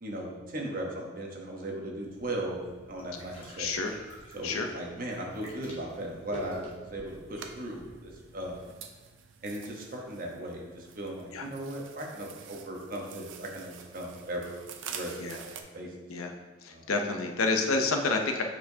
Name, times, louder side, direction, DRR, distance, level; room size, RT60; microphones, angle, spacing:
voice 1, 0.0-2.6 2.9-3.7 4.3-8.7 9.4-15.2 15.4-15.9 16.7-16.9, right 1 dB, 45° right, -1 dB, 1.0 m, -37 dB
sound 1, 2.0-8.7, left 1 dB, 25° left, 1.2 m, -49 dB
voice 2, 3.6-3.9 4.4-4.7 11.3-11.5 15.2-15.4 16.1-16.3 16.6-18.4, left 3 dB, 90° left, 4 dB, 0.6 m, -29 dB
sound 2, 7.0-15.6, right 7 dB, 65° right, 0.5 m, -47 dB
7.6 x 4.5 x 2.7 m, 1.3 s
head